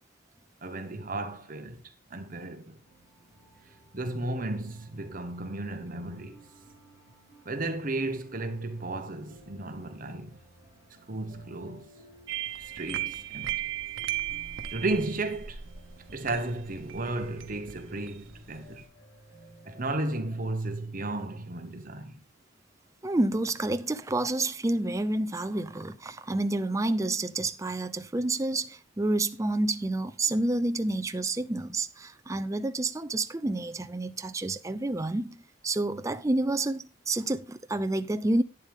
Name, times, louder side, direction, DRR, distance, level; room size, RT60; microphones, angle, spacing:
voice 1, 0.6-1.8 2.1-2.8 3.9-6.4 7.4-10.4 11.1-11.9 12.6-13.6 14.7-15.6 16.1-18.8 19.6-22.2, right 2 dB, 45° right, 1.3 m, -34 dB
sound 1, 2.8-20.5, equal, 50° left, 6.8 m, -56 dB
sound 2, 12.3-18.9, right 12 dB, 90° right, 1.1 m, -37 dB
voice 2, 23.0-35.4 35.6-38.4, right 2 dB, 15° right, 0.5 m, -29 dB
11.0 x 9.0 x 3.5 m
head